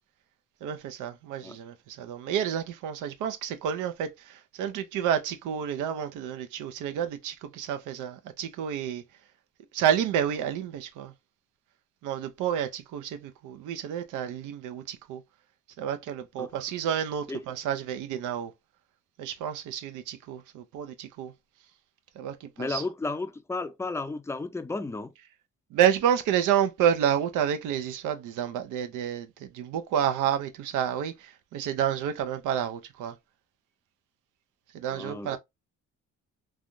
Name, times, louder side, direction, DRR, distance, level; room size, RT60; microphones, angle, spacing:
voice 1, 0.6-9.0 9.7-11.1 12.0-15.2 15.8-18.5 19.2-21.3 22.2-22.8 25.7-33.1 34.7-35.4, right 9 dB, 90° right, 0.6 m, -29 dB
voice 2, 22.6-25.1 34.9-35.4, left 3 dB, 10° left, 0.4 m, -33 dB
3.4 x 2.3 x 2.5 m
cardioid pair, 90°, 30 cm